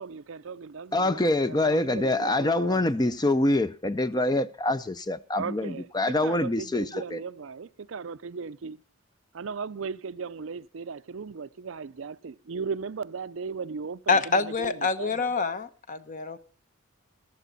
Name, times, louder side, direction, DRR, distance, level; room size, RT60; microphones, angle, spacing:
voice 1, 0.0-2.9 5.3-8.8 9.3-15.3, right 5 dB, 65° right, 0.5 m, -37 dB
voice 2, 0.9-7.2, left 2 dB, 20° left, 0.5 m, -25 dB
voice 3, 14.1-16.4, left 4 dB, 40° left, 0.9 m, -26 dB
15.0 x 12.0 x 4.0 m
head